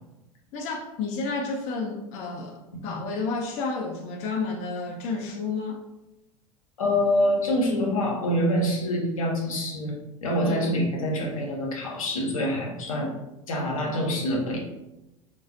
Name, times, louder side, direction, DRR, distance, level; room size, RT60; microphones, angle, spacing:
voice 1, 0.5-5.8 10.4-10.8, left 4 dB, 45° left, 3 dB, 0.4 m, -31 dB
voice 2, 6.8-13.2 13.5-14.6, equal, 80° left, 0 dB, 0.6 m, -26 dB
2.3 x 2.1 x 2.5 m, 0.94 s
hypercardioid pair, 85°, 17 cm